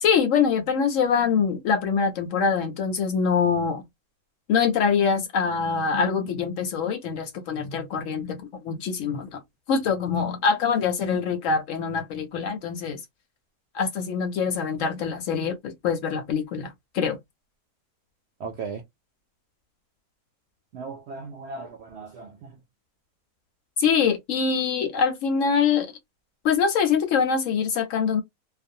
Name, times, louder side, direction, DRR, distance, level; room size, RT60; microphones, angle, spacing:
voice 1, 0.0-3.8 4.5-9.4 9.7-13.0 13.7-17.2 23.8-25.9 26.4-28.2, left 6 dB, 70° left, 0.8 m, -24 dB
voice 2, 18.4-18.8 20.7-22.6, right 4 dB, 70° right, 0.6 m, -37 dB
2.4 x 2.2 x 2.6 m
omnidirectional pair, 1.6 m